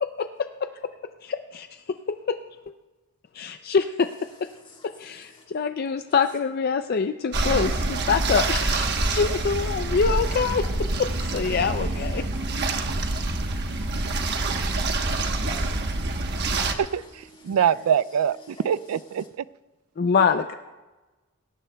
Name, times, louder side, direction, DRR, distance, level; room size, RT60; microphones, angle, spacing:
voice 1, 1.2-2.4 3.3-4.1 4.4-4.5 4.8-10.7 11.0-11.1 11.3-12.3 20.0-20.5, left 5 dB, 45° left, 0.4 m, -25 dB
voice 2, 4.6-5.4 10.1-10.2 10.6-11.1 12.3-16.9 17.3-17.7 18.4-18.6, left 1 dB, 25° left, 3.7 m, -50 dB
sound 1, 7.3-16.7, right 2 dB, 50° right, 1.1 m, -26 dB
voice 3, 16.8-19.4, right 8 dB, 90° right, 0.3 m, -24 dB
21.0 x 17.5 x 2.3 m
head